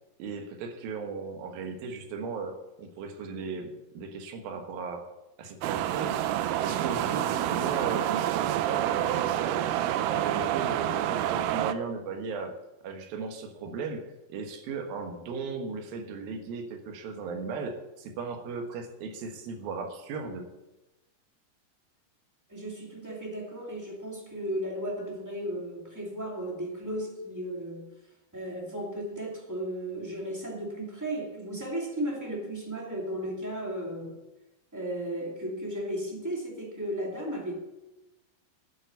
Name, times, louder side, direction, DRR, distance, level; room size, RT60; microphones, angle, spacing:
voice 1, 0.2-5.1 5.4-6.2 6.6-9.7 10.0-12.5 12.8-14.0 14.3-20.5, right 4 dB, 70° right, 5 dB, 3.1 m, -36 dB
sound 1, 5.6-11.7, right 12 dB, 85° right, 1.8 m, -28 dB
voice 2, 22.5-27.9 28.3-34.1 34.7-37.6, right 1 dB, 5° right, -1 dB, 1.7 m, -35 dB
9.7 x 8.3 x 8.1 m, 0.99 s
omnidirectional pair, 4.5 m